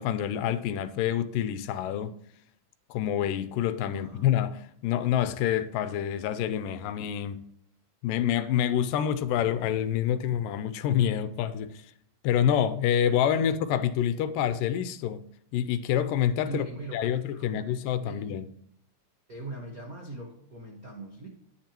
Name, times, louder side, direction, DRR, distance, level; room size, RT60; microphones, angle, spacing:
voice 1, 0.0-2.2 2.9-7.4 8.0-11.8 12.2-15.3 15.5-16.7 16.9-18.5, left 10 dB, 85° left, 2.2 m, -27 dB
voice 2, 3.9-4.3 13.3-13.6 16.5-17.8 18.0-18.3 19.3-21.3, right 2 dB, 80° right, 0.7 m, -41 dB
10.5 x 9.2 x 2.9 m
omnidirectional pair, 4.0 m